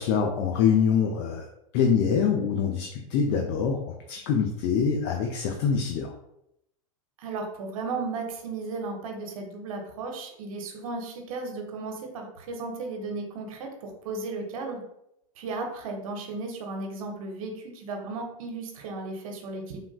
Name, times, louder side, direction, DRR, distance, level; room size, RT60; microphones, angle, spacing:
voice 1, 0.0-1.5 1.7-6.1, left 6 dB, 55° left, 2 dB, 0.4 m, -25 dB
voice 2, 7.2-14.8 15.4-19.8, right 3 dB, 75° right, 3 dB, 0.8 m, -35 dB
3.4 x 2.4 x 2.3 m, 0.79 s
hypercardioid pair, 120°, 18 cm